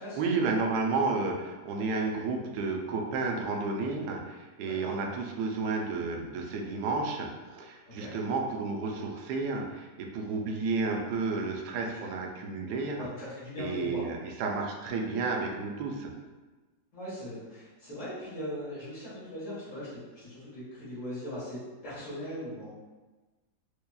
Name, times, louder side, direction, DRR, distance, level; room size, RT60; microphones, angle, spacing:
voice 1, 0.0-13.1 13.6-16.1, right 3 dB, 75° right, 1 dB, 1.1 m, -31 dB
voice 2, 4.6-4.9 8.0-8.1 11.8-12.1 12.9-14.1 16.9-22.7, left 1 dB, 50° left, -9 dB, 1.9 m, -40 dB
4.6 x 2.8 x 2.3 m, 1.2 s
omnidirectional pair, 1.8 m